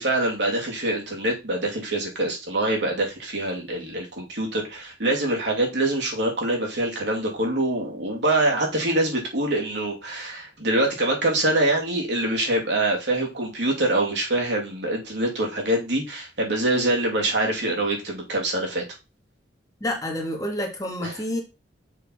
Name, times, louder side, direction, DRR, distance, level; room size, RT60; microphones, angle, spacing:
voice 1, 0.0-18.8 21.0-21.1, right 1 dB, 70° right, 0 dB, 2.7 m, -24 dB
voice 2, 19.8-21.4, left 1 dB, 20° left, 2 dB, 1.6 m, -28 dB
6.4 x 4.1 x 5.9 m, 0.27 s
head